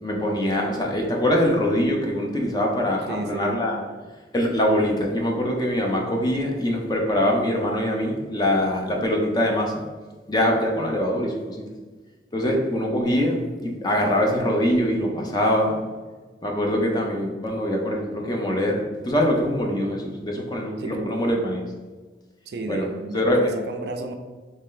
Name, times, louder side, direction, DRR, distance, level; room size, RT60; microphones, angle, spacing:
voice 1, 0.0-3.8 4.3-9.8 10.3-11.6 12.3-15.8 16.4-18.7 19.0-21.7 22.7-22.9 23.1-23.5, equal, 25° left, 1 dB, 0.5 m, -23 dB
voice 2, 3.1-3.6 20.8-21.2 22.5-24.1, right 2 dB, 60° right, 5 dB, 0.4 m, -32 dB
3.2 x 2.7 x 3.7 m, 1.3 s
head